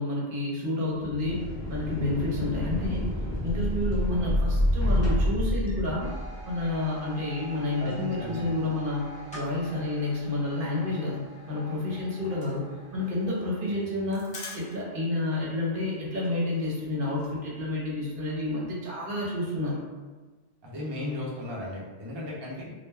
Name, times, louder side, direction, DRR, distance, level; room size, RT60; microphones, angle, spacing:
voice 1, 0.0-3.1 3.4-6.1 6.5-12.6 12.9-14.3 14.5-19.8, left 2 dB, 55° right, -4 dB, 0.8 m, -30 dB
sound 1, 0.9-6.6, left 1 dB, 40° left, 0.4 m, -28 dB
sound 2, 6.0-15.6, right 1 dB, 5° left, 0.8 m, -47 dB
voice 2, 7.8-8.5 20.6-22.7, left 1 dB, 35° right, -5 dB, 0.4 m, -35 dB
sound 3, 11.9-15.1 15.4-15.5 15.8-15.9 16.2-17.3, left 3 dB, 60° left, 0.7 m, -45 dB
2.2 x 2.1 x 3.2 m, 1.3 s
omnidirectional pair, 1.1 m